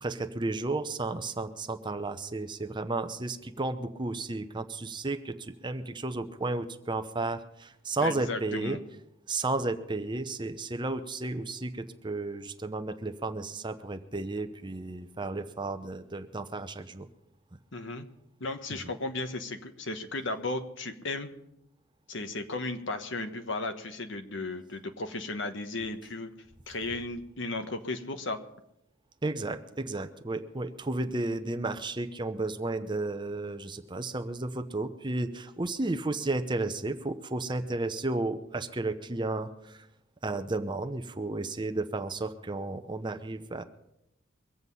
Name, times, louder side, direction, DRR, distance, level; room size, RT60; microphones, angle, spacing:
voice 1, 0.0-8.8 9.3-17.1 29.2-39.9 40.2-43.6, right 2 dB, 25° right, 9 dB, 0.8 m, -33 dB
voice 2, 8.0-8.8 17.7-18.1 18.4-21.3 22.1-26.3 26.7-28.4, left 2 dB, 60° left, 8 dB, 1.3 m, -35 dB
23.5 x 8.1 x 5.5 m, 0.82 s
head